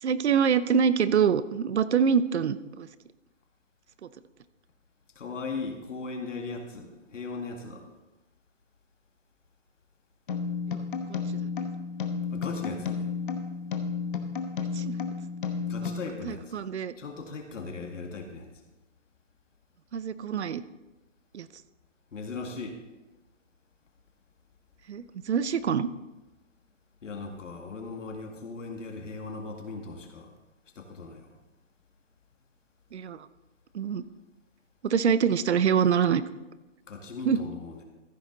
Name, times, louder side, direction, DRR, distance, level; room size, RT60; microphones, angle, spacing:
voice 1, 0.0-2.9 4.0-4.1 10.7-10.8 11.1-11.2 14.7-14.9 15.8-16.0 16.2-16.9 19.9-20.6 21.3-21.5 24.9-25.9 32.9-33.3 33.7-34.0 34.8-36.2 37.2-37.4, right 7 dB, 60° right, 15 dB, 0.7 m, -25 dB
voice 2, 5.2-7.9 12.3-13.1 15.7-16.5 17.0-18.5 22.1-22.8 27.0-30.3 30.8-31.4 36.9-37.8, left 4 dB, 75° left, 3 dB, 2.1 m, -38 dB
sound 1, 10.3-16.0, left 5 dB, 45° left, 1.0 m, -32 dB
14.5 x 7.4 x 3.9 m, 1.1 s
hypercardioid pair, 170°, 38 cm